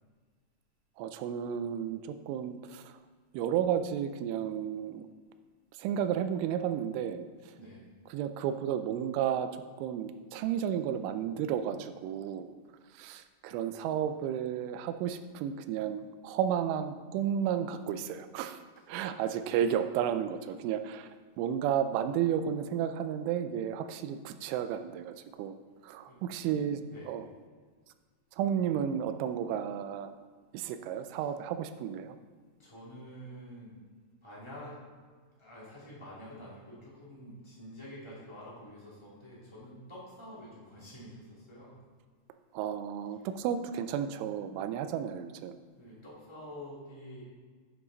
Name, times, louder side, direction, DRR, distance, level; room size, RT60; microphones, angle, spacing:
voice 1, 1.0-3.0 3.3-5.1 5.7-7.5 8.1-12.5 12.9-18.6 18.9-21.1 21.4-25.5 25.8-27.3 28.3-30.1 30.5-32.2 42.5-45.6, right 9 dB, 90° right, 9 dB, 3.0 m, -32 dB
voice 2, 7.6-7.9 26.0-26.6 26.8-27.1 31.1-31.2 32.4-33.8 34.2-34.8 35.4-41.7 43.2-43.3 45.8-47.2, equal, 15° left, -8 dB, 0.9 m, -48 dB
10.5 x 6.1 x 3.9 m, 1.5 s
omnidirectional pair, 5.4 m